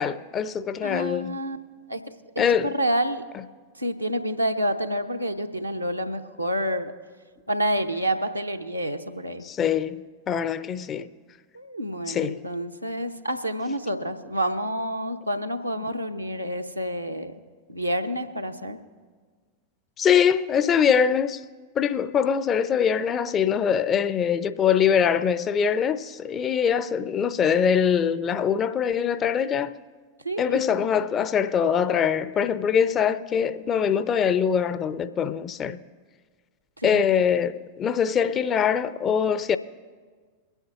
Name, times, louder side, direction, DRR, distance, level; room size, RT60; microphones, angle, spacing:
voice 1, 0.0-1.4 2.4-2.7 9.4-11.1 12.1-12.4 20.0-21.4 21.8-29.7 30.4-35.8 36.8-39.6, left 7 dB, 25° left, 0.5 m, -23 dB
voice 2, 0.8-1.6 1.9-2.0 2.4-3.2 3.8-6.9 7.5-9.4 11.5-17.3 17.7-18.8 30.2-30.6 36.8-37.1, equal, 90° right, 0.8 m, -28 dB
23.0 x 9.1 x 3.0 m
figure-of-eight pair, 90°, 0 cm